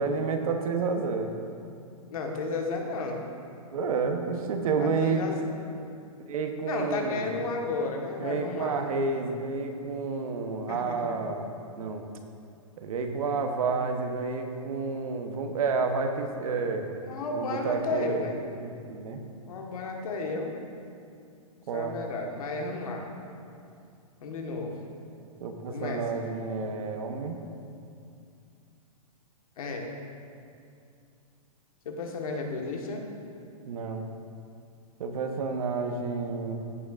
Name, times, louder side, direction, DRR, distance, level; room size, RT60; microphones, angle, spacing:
voice 1, 0.0-1.3 3.7-5.2 6.3-7.3 8.2-11.5 11.8-12.0 12.8-16.9 17.3-18.3 18.6-19.2 21.7-22.0 25.4-27.4 33.6-34.1 35.0-36.6, right 4 dB, 70° right, 5 dB, 1.0 m, -30 dB
voice 2, 2.1-3.3 4.8-5.4 6.6-8.8 10.7-11.2 17.1-18.4 19.5-20.5 21.7-23.0 24.2-24.7 25.7-26.2 29.6-29.9 31.8-33.0, left 3 dB, 70° left, 1 dB, 1.4 m, -33 dB
15.0 x 5.9 x 2.5 m, 2.5 s
hypercardioid pair, 140°, 19 cm